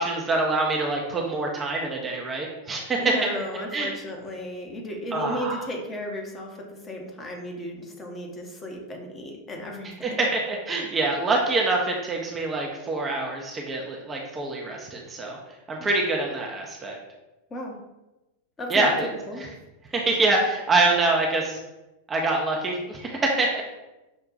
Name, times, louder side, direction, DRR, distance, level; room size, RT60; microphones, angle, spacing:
voice 1, 0.0-3.0 3.7-3.9 5.1-5.6 10.0-15.4 15.7-17.0 18.7-19.1 19.9-21.6 22.1-23.6, right 2 dB, 20° right, -1 dB, 0.5 m, -25 dB
voice 2, 3.0-10.2 15.8-15.9 17.5-17.8 18.6-19.5, equal, 20° left, 1 dB, 0.8 m, -34 dB
6.2 x 2.2 x 2.6 m, 1.0 s
figure-of-eight pair, 90°, 0 cm